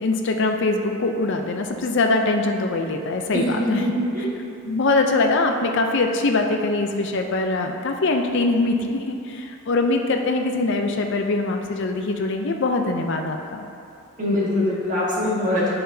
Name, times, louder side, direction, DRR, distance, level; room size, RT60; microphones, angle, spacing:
voice 1, 0.0-3.8 4.6-13.6, left 3 dB, 55° left, 4 dB, 0.5 m, -22 dB
voice 2, 3.3-4.2 14.2-15.7, left 1 dB, 35° right, -7 dB, 1.5 m, -23 dB
8.5 x 5.7 x 2.7 m, 2.6 s
head